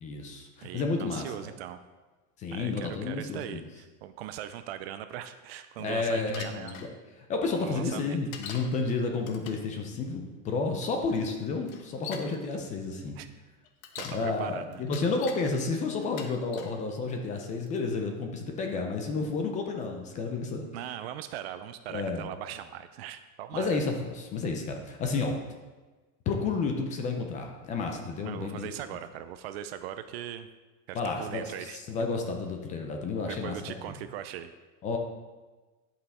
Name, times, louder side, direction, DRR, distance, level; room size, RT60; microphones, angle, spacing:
voice 1, 0.0-1.5 2.4-3.6 5.8-6.9 7.2-13.2 14.0-20.6 21.9-22.3 23.5-25.4 26.3-29.0 30.9-33.8 34.8-35.0, left 4 dB, 20° left, 3 dB, 0.5 m, -31 dB
voice 2, 0.6-1.8 2.5-6.8 7.6-8.2 13.2-13.3 14.0-14.8 20.7-23.8 28.2-30.5 30.9-31.8 33.3-34.5, right 11 dB, 45° right, 10 dB, 0.5 m, -40 dB
Bicycle, 6.3-6.9 8.3-8.7 9.2-9.7 10.8-10.9 11.7-12.3 13.6-14.2 14.7-15.4 16.0-16.8 17.4-17.8, left 7 dB, 70° left, 1.2 m, -42 dB
10.5 x 5.7 x 4.2 m, 1.3 s
supercardioid pair, 160°, 43 cm